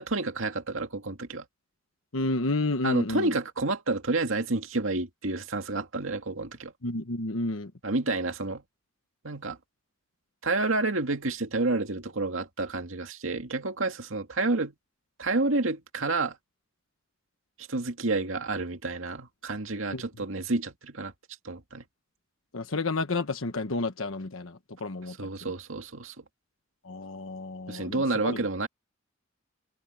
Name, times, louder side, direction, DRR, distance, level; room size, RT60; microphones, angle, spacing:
voice 1, 0.0-1.4 2.8-6.7 7.8-8.6 9.2-9.6 10.4-14.7 15.2-16.4 17.6-21.1 21.4-21.8 25.2-26.2 27.7-28.7, right 3 dB, 75° right, 2.2 m, -29 dB
voice 2, 2.1-3.3 6.8-7.7 19.9-20.0 22.5-25.5 26.8-28.4, left 2 dB, 85° left, 1.2 m, -31 dB
head